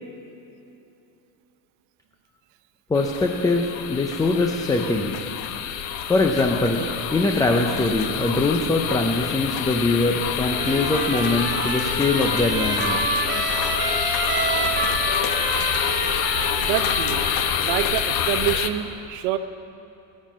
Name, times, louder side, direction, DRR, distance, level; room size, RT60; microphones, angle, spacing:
sound 1, 2.9-18.7, left 9 dB, 80° left, 1.1 m, -27 dB
voice 1, 2.9-5.2 6.1-13.0, left 2 dB, 10° left, 3 dB, 0.4 m, -22 dB
Trumpet, 10.4-18.0, right 3 dB, 25° right, 1.6 m, -28 dB
voice 2, 16.6-17.2 17.6-19.4, right 12 dB, 80° right, 10 dB, 1.0 m, -26 dB
20.5 x 7.5 x 7.3 m, 2.9 s
cardioid pair, 145°, 49 cm